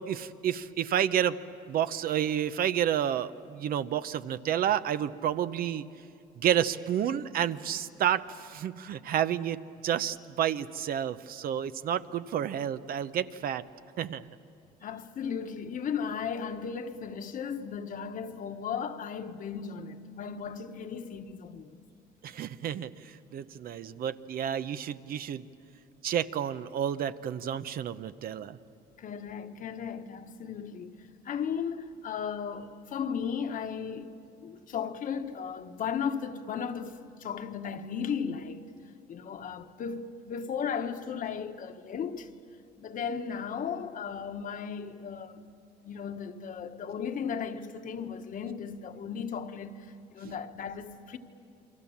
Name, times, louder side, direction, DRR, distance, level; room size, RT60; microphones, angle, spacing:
voice 1, 0.0-1.4 1.7-5.8 6.4-13.6 14.0-14.3 22.2-25.4 26.0-28.6 50.2-50.3, right 10 dB, 60° right, 0.8 m, -30 dB
voice 2, 14.8-21.8 29.0-34.1 34.4-38.7 39.1-42.3 42.8-45.4 45.8-51.2, left 7 dB, 55° left, 1.4 m, -36 dB
29.5 x 23.5 x 7.3 m
cardioid pair, 110°, 17 cm